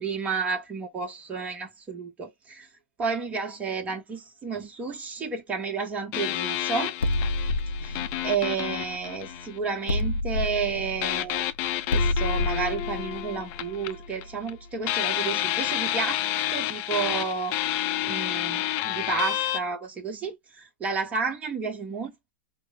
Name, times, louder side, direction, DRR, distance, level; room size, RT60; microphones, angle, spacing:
voice 1, 0.0-2.7 3.0-6.9 7.8-11.4 11.9-16.2 16.5-17.6 18.0-22.3, right 5 dB, 25° right, 1.1 m, -31 dB
sound 1, 6.1-10.0 11.0-14.5 14.8-19.6, left 14 dB, 45° left, 0.7 m, -30 dB
sound 2, 7.0-9.4 9.9-14.5, left 2 dB, 85° left, 0.6 m, -29 dB
5.2 x 2.1 x 3.3 m
hypercardioid pair, 105°, 6 cm